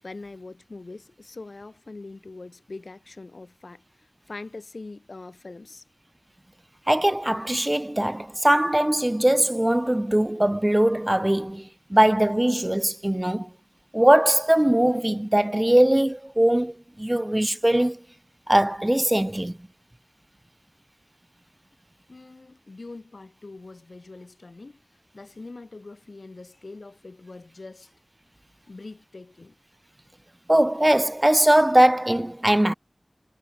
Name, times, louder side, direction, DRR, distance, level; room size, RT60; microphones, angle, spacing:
voice 1, 0.0-3.8 4.3-5.8 13.3-13.4 22.1-24.8 25.1-27.9 28.7-29.6, left 3 dB, 85° left, 7.8 m, -42 dB
voice 2, 6.9-13.5 13.9-18.0 18.5-19.5 30.5-32.7, right 1 dB, 20° right, 0.7 m, -21 dB
wide cardioid pair, 50°, 0 cm